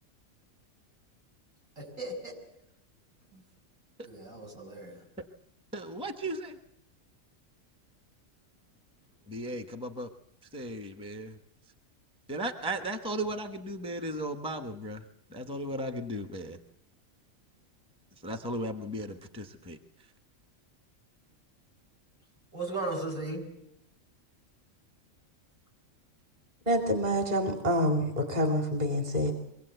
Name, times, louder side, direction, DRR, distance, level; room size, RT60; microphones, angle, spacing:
voice 1, 1.8-2.3 4.0-5.0 22.5-23.4, right 2 dB, 70° right, 0 dB, 7.1 m, -36 dB
voice 2, 5.7-6.6 9.3-10.1 10.5-11.4 12.3-15.0 15.3-16.6 18.2-19.8, right 1 dB, 5° right, 6 dB, 1.0 m, -36 dB
voice 3, 26.7-29.3, equal, 30° right, 3 dB, 2.6 m, -27 dB
24.5 x 17.0 x 8.0 m, 0.84 s
omnidirectional pair, 1.4 m